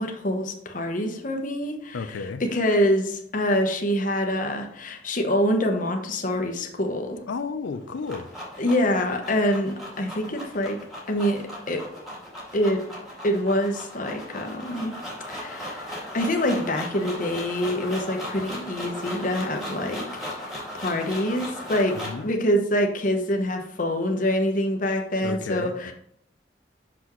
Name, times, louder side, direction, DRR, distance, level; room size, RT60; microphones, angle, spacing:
voice 1, 0.0-7.2 8.6-10.8 11.1-11.4 11.7-11.8 12.5-12.8 13.2-14.9 15.3-15.9 16.1-20.2 20.7-25.9, equal, 45° left, 0.9 m, -25 dB
voice 2, 1.9-2.4 7.3-8.3 21.9-22.3 25.2-25.9, left 4 dB, 80° left, 0.4 m, -32 dB
sound 1, 7.7-22.3, left 1 dB, ahead, 2.1 m, -37 dB
6.2 x 5.8 x 3.0 m
head